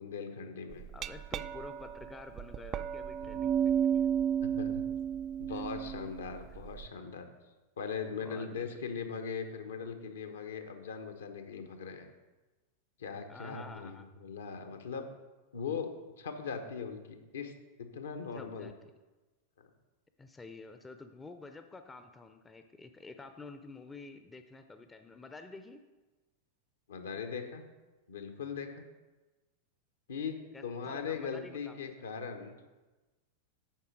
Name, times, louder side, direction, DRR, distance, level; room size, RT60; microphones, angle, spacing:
voice 1, 0.0-0.8 3.2-3.3 4.4-4.8 5.4-7.3 7.8-12.1 13.0-15.1 15.5-17.5 17.9-18.7 19.6-19.7 26.9-27.6 28.1-28.8 30.1-30.4 30.6-32.6, left 6 dB, 65° left, 6 dB, 1.0 m, -40 dB
Glass, 0.7-6.9, right 8 dB, 30° right, 0.3 m, -33 dB
voice 2, 0.9-3.9 8.2-8.7 13.3-14.1 18.3-18.7 20.2-25.8 30.5-31.9, left 3 dB, 15° left, 8 dB, 0.6 m, -49 dB
8.9 x 5.7 x 6.2 m, 1.2 s
figure-of-eight pair, 90°, 0 cm